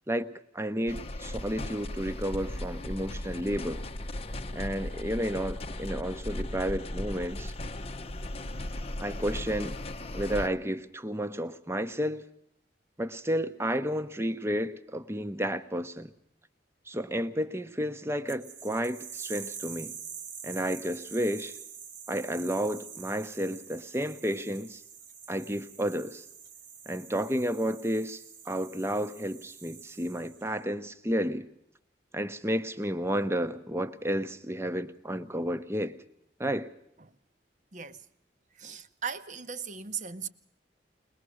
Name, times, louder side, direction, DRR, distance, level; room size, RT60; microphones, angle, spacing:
voice 1, 0.1-3.9 4.5-7.5 9.0-9.7 10.1-12.2 13.0-16.1 16.9-19.9 20.4-21.5 22.1-24.8 25.3-26.2 26.9-31.5 32.1-36.0 36.4-36.7, equal, 15° right, 0.8 m, -31 dB
sound 1, 0.9-10.5, left 1 dB, 30° left, 0.8 m, -37 dB
sound 2, 18.3-30.6, right 7 dB, 80° right, 1.5 m, -46 dB
voice 2, 38.6-40.3, right 6 dB, 40° right, 0.8 m, -38 dB
21.5 x 21.0 x 6.3 m
head